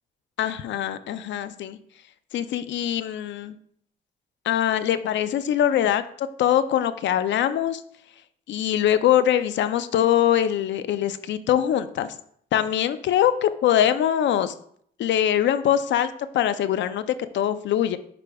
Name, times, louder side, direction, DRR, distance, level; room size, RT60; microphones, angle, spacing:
voice 1, 0.4-1.8 2.3-3.6 4.4-7.8 8.5-12.2 12.5-14.5 15.0-17.1 17.3-18.0, left 10 dB, 70° left, 12 dB, 0.5 m, -23 dB
9.9 x 4.7 x 2.3 m, 0.64 s
cardioid pair, 90°, 20 cm